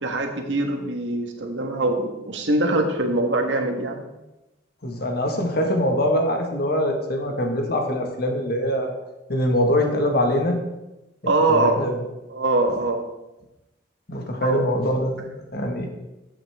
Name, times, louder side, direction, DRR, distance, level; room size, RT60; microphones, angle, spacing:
voice 1, 0.0-4.0 11.2-11.8 12.3-13.0 14.4-14.6, right 2 dB, 75° right, 3 dB, 1.6 m, -23 dB
voice 2, 4.8-8.9 9.3-10.6 11.5-12.0 14.1-15.9, equal, 55° left, 2 dB, 1.6 m, -23 dB
14.5 x 7.9 x 3.6 m, 0.99 s
head